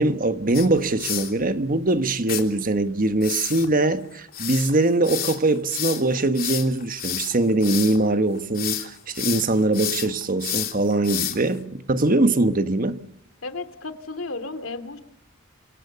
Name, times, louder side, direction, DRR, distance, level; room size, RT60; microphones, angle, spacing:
voice 1, 0.0-13.0, right 2 dB, 45° right, 1.3 m, -22 dB
sound 1, 0.5-1.3 2.3-2.4 3.2-8.0 8.4-8.9 9.1-11.6, left 11 dB, 50° left, 3.2 m, -30 dB
voice 2, 13.4-15.0, left 3 dB, 85° left, 2.5 m, -33 dB
27.5 x 23.0 x 6.9 m
head